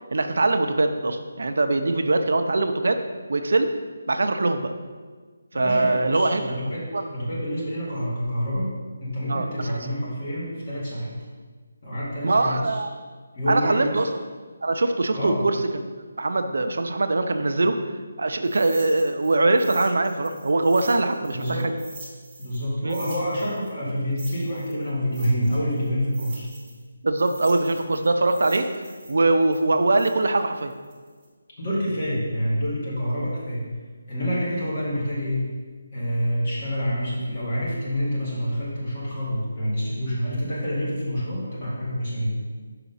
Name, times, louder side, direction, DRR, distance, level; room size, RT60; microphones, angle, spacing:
voice 1, 0.1-3.0 3.3-3.7 4.1-4.7 5.5-6.4 6.9-7.0 9.3-9.8 12.2-12.9 13.5-14.1 14.6-15.9 16.2-17.8 18.2-21.5 22.8-23.0 27.0-28.7 29.1-30.7, right 2 dB, 65° right, 7 dB, 0.6 m, -22 dB
voice 2, 5.5-8.7 9.0-11.2 11.8-12.8 13.3-14.1 15.1-15.4 21.3-21.7 22.4-26.5 31.6-33.6 34.1-35.5 35.9-42.4, equal, 30° left, -7 dB, 2.2 m, -27 dB
sound 1, 18.4-22.6 22.9-26.8 27.2-31.3, right 2 dB, 5° right, 1.1 m, -44 dB
5.8 x 5.0 x 5.5 m, 1.5 s
hypercardioid pair, 175°, 0 cm